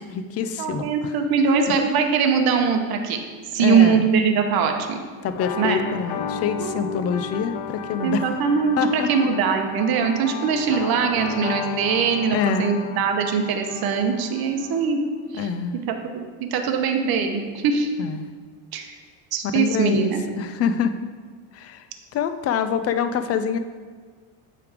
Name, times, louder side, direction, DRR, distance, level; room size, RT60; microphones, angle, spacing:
voice 1, 0.0-1.1 3.6-4.1 5.2-8.2 8.8-9.3 12.3-12.8 15.3-15.8 18.0-18.3 19.4-21.1 21.5-21.8 22.1-23.6, left 7 dB, 35° left, 10 dB, 0.4 m, -25 dB
voice 2, 0.6-3.2 3.5-5.0 5.6-5.8 6.6-7.0 8.0-15.0 15.3-15.5 15.8-17.9 18.7-18.9 19.3-20.2, right 6 dB, 50° right, 4 dB, 0.9 m, -22 dB
sound 1, 5.3-14.9, left 7 dB, 60° left, 0.8 m, -34 dB
8.2 x 3.5 x 4.9 m, 1.5 s
supercardioid pair, 110°, 48 cm